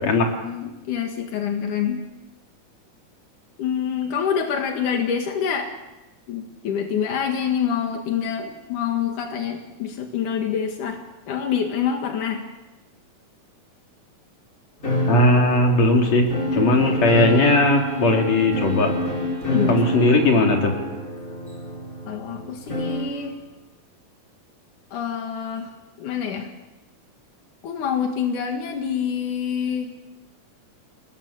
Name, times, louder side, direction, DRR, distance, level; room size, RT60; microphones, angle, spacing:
voice 1, 0.0-2.0 3.6-5.7 6.3-11.0 11.3-12.5 16.5-16.7 19.5-19.8 22.1-23.4 24.9-25.7 26.0-26.5 27.6-30.0, left 8 dB, 90° left, 3 dB, 3.4 m, -26 dB
sound 1, 14.8-23.2, left 1 dB, 25° left, 4.8 m, -27 dB
voice 2, 15.1-18.9 19.7-20.7, left 2 dB, 60° left, 1 dB, 4.9 m, -18 dB
Wind instrument woodwind instrument, 16.3-21.1, left 1 dB, 20° right, 3.3 m, -35 dB
29.5 x 21.0 x 7.1 m, 1.1 s
omnidirectional pair, 3.5 m